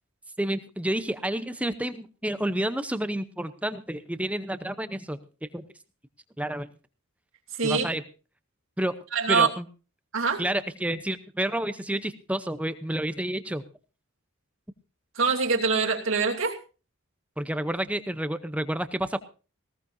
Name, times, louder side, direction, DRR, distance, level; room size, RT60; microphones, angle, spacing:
voice 1, 0.4-5.6 6.4-6.7 7.6-8.0 8.8-8.9 9.3-9.7 10.4-13.6 17.4-19.2, right 1 dB, 5° right, 11 dB, 0.7 m, -30 dB
voice 2, 9.1-9.5 10.1-10.4 15.2-16.6, right 5 dB, 65° right, 0 dB, 2.7 m, -24 dB
19.0 x 17.5 x 2.7 m, 0.35 s
head